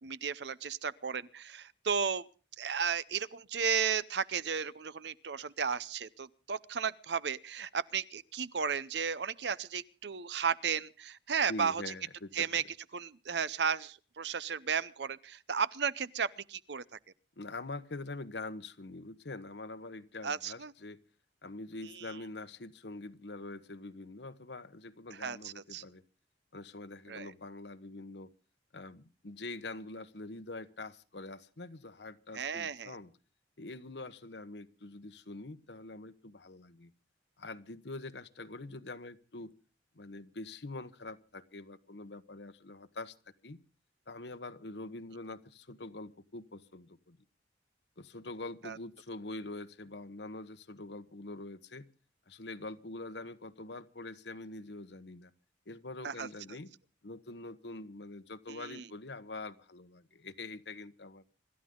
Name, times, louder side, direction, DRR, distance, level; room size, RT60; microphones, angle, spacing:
voice 1, 0.0-2.3 2.6-11.8 12.3-12.6 12.9-17.0 20.2-20.7 21.8-22.1 25.2-25.8 27.1-27.3 32.3-32.9 48.6-48.8 56.0-56.6 58.5-58.9, right 6 dB, 65° right, 0.7 m, -34 dB
voice 2, 11.5-12.6 17.4-21.0 21.4-26.0 26.5-28.3 28.7-33.1 33.6-36.9 37.4-39.5 39.9-43.1 43.4-43.6 44.1-47.2 48.0-51.9 52.3-55.3 55.7-56.7 57.0-61.2, left 2 dB, 65° left, 1.1 m, -44 dB
26.0 x 13.0 x 3.8 m
head